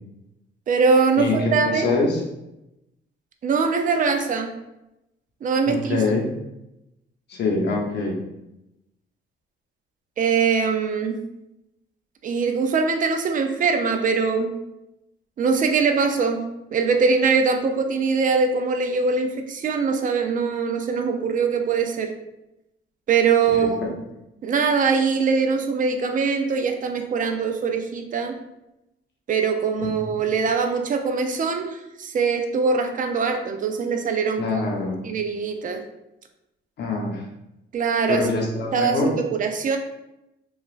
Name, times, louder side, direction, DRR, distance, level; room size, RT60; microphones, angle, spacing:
voice 1, 0.7-1.9 3.4-4.5 5.4-6.0 10.2-11.2 12.2-14.5 15.4-16.4 16.7-22.1 23.1-23.8 24.4-28.4 29.3-34.6 35.0-35.8 37.7-38.3 38.7-39.8, right 5 dB, 40° right, 5 dB, 0.4 m, -22 dB
voice 2, 1.2-2.2 5.7-6.3 7.3-8.2 23.5-23.9 29.8-30.0 34.4-35.0 36.8-37.2 38.1-39.1, left 3 dB, 60° left, -1 dB, 0.8 m, -24 dB
2.9 x 2.4 x 2.4 m, 0.90 s
cardioid pair, 90°, 20 cm